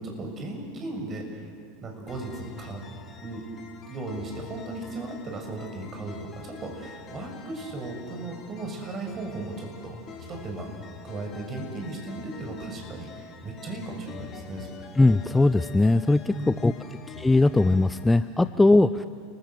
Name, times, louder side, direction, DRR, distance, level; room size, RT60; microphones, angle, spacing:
voice 1, 0.0-1.5 1.8-2.8 3.2-3.4 3.9-10.0 10.3-10.7 11.0-14.7 16.3-16.9, right 2 dB, 30° right, 2 dB, 7.0 m, -36 dB
sound 1, 2.1-18.1, left 6 dB, 30° left, 2.5 m, -46 dB
voice 2, 15.0-16.7 17.2-19.1, left 2 dB, 10° left, 13 dB, 0.6 m, -20 dB
30.0 x 21.5 x 8.2 m, 2.1 s
figure-of-eight pair, 80°, 0 cm